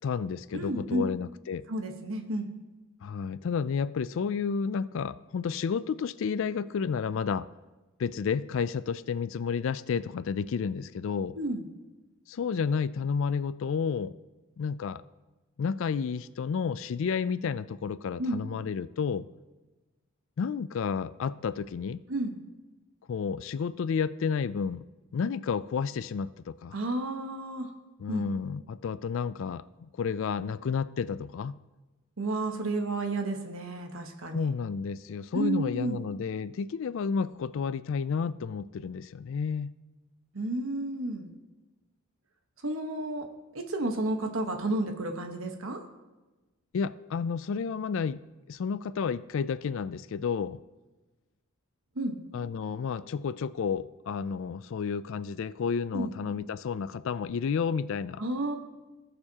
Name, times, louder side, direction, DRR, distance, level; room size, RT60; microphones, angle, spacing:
voice 1, 0.0-1.7 3.0-7.5 8.0-11.3 12.3-14.1 14.6-15.0 15.6-19.3 20.4-22.0 23.1-24.8 25.1-26.7 28.0-31.6 34.3-39.8 46.7-50.6 52.3-58.2, left 6 dB, 65° left, 16 dB, 0.4 m, -31 dB
voice 2, 0.5-1.1 1.7-2.5 11.3-11.6 18.2-18.4 22.1-22.4 26.7-27.7 28.1-28.3 32.2-34.5 35.3-36.0 40.3-41.3 42.6-45.8 51.9-52.2 55.9-56.1 58.2-58.6, right 2 dB, 70° right, 5 dB, 1.2 m, -31 dB
18.5 x 6.8 x 2.9 m, 1.1 s
head